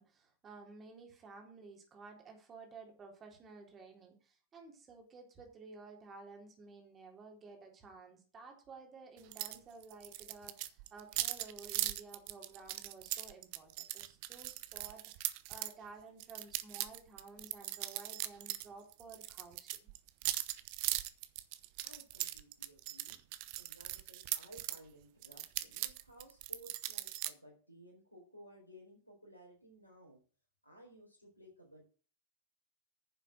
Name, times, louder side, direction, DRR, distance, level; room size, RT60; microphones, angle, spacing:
voice 1, 0.0-19.9, right 4 dB, 25° right, 2 dB, 3.7 m, -54 dB
sound 1, 9.3-9.6 9.8-15.7 16.2-18.7 18.9-24.8 25.2-27.3, right 16 dB, 45° right, 0.9 m, -39 dB
voice 2, 21.8-23.2 23.6-30.2 30.6-31.8, equal, 85° left, -2 dB, 4.2 m, -58 dB
10.0 x 7.3 x 6.3 m, 0.38 s
figure-of-eight pair, 90°, 0 cm